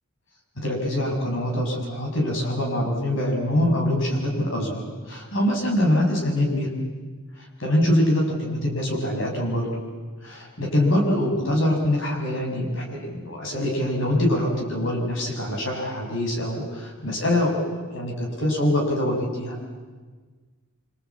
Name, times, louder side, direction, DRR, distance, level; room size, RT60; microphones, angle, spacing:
voice 1, 0.6-6.7 7.6-9.7 10.2-19.6, left 1 dB, 55° left, 0 dB, 6.7 m, -24 dB
26.5 x 25.5 x 8.6 m, 1.4 s
head